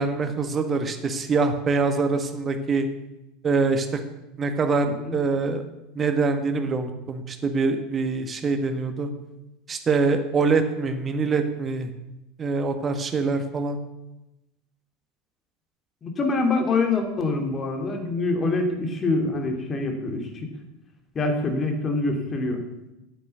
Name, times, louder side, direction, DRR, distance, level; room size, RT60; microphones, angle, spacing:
voice 1, 0.0-2.9 3.4-4.0 4.4-5.6 5.9-9.1 9.7-11.9 12.4-13.8, right 4 dB, 30° right, 7 dB, 1.7 m, -24 dB
voice 2, 16.0-20.3 21.1-22.6, left 3 dB, 30° left, 4 dB, 2.8 m, -25 dB
9.4 x 8.6 x 8.2 m, 0.96 s
figure-of-eight pair, 80°, 0 cm